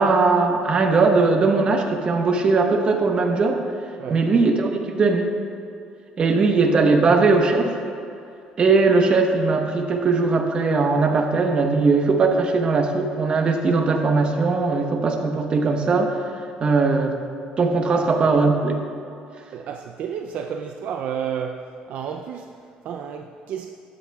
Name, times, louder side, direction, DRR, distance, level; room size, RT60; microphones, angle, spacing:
voice 1, 0.0-3.6 4.1-5.3 6.2-7.8 8.6-16.3 16.6-17.2 17.6-18.8, right 3 dB, 40° right, 3 dB, 1.0 m, -19 dB
voice 2, 17.9-18.3 19.5-23.7, right 8 dB, 65° right, 4 dB, 0.4 m, -32 dB
12.5 x 8.6 x 2.3 m, 2.6 s
cardioid pair, 105°, 3 cm